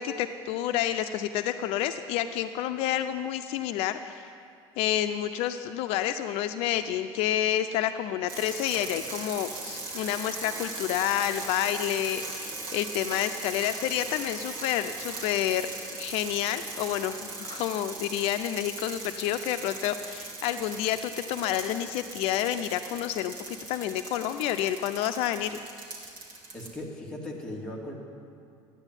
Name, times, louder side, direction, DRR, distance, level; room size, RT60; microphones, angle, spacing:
voice 1, 0.0-4.3 4.8-15.7 15.9-25.6, left 11 dB, 70° left, 9 dB, 0.6 m, -29 dB
sound 1, 8.3-26.7, right 3 dB, 55° right, 2.9 m, -39 dB
voice 2, 26.5-27.9, left 1 dB, 10° left, -3 dB, 2.5 m, -38 dB
14.0 x 9.8 x 9.8 m, 2.4 s
cardioid pair, 155°, 10 cm